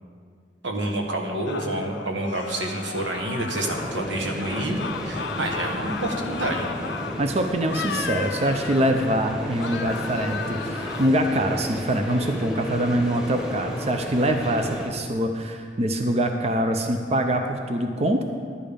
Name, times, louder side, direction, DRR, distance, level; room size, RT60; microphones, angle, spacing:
voice 1, 0.6-6.8, right 1 dB, 90° right, 2 dB, 1.4 m, -28 dB
sound 1, 1.5-4.1 4.4-7.3 7.7-9.2 9.6-11.1, left 6 dB, 75° left, 0.7 m, -35 dB
sound 2, 3.6-14.9, equal, 5° right, 1.1 m, -33 dB
voice 2, 7.2-18.2, right 1 dB, 35° right, 5 dB, 0.6 m, -24 dB
11.5 x 9.0 x 5.2 m, 2.1 s
head